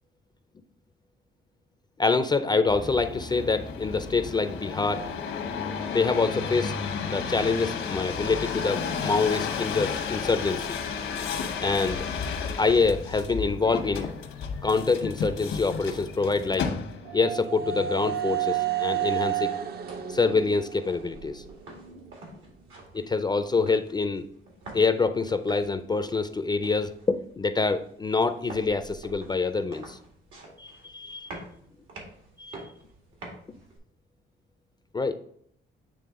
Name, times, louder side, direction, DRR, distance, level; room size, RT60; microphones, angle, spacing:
voice 1, 2.0-5.0 5.9-6.8 7.1-10.7 11.6-12.1 12.6-14.1 14.6-16.8 17.1-19.5 20.1-21.4 22.9-24.3 24.7-30.0 30.6-31.3 32.4-32.6 34.9-35.2, left 4 dB, 20° left, 9 dB, 0.4 m, -26 dB
sound 1, 2.7-17.2 17.8-18.3, left 6 dB, 80° left, 1.0 m, -33 dB
sound 2, 16.4-22.1, right 12 dB, 50° right, 0.6 m, -31 dB
sound 3, 19.6-33.8, right 2 dB, 85° right, 2.0 m, -47 dB
8.5 x 3.3 x 3.6 m, 0.67 s
cardioid pair, 90°, 20 cm